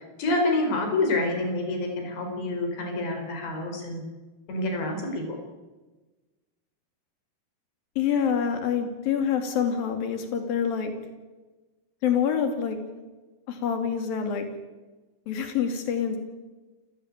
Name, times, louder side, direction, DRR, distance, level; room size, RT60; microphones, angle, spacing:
voice 1, 0.2-4.0 4.5-5.4, left 2 dB, 85° left, 4 dB, 6.8 m, -27 dB
voice 2, 8.0-10.9 12.0-12.8 13.5-14.5 15.3-16.2, left 7 dB, 60° left, 6 dB, 4.4 m, -26 dB
28.0 x 16.0 x 9.1 m, 1.2 s
omnidirectional pair, 4.9 m